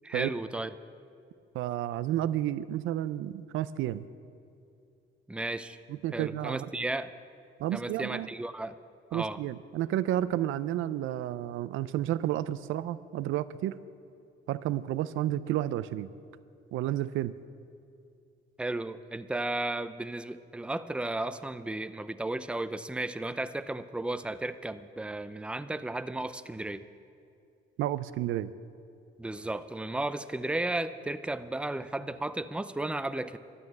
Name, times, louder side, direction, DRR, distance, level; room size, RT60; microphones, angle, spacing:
voice 1, 0.0-0.7 5.3-5.8 6.1-7.1 7.7-8.8 9.1-9.4 18.6-26.8 29.2-33.4, right 2 dB, 5° right, 13 dB, 0.5 m, -34 dB
voice 2, 1.5-4.1 5.9-6.7 7.6-8.3 9.1-13.8 14.5-16.1 16.7-17.3 27.8-28.5, right 13 dB, 85° right, 16 dB, 0.5 m, -31 dB
12.5 x 11.0 x 7.9 m, 2.5 s
cardioid pair, 90°, 20 cm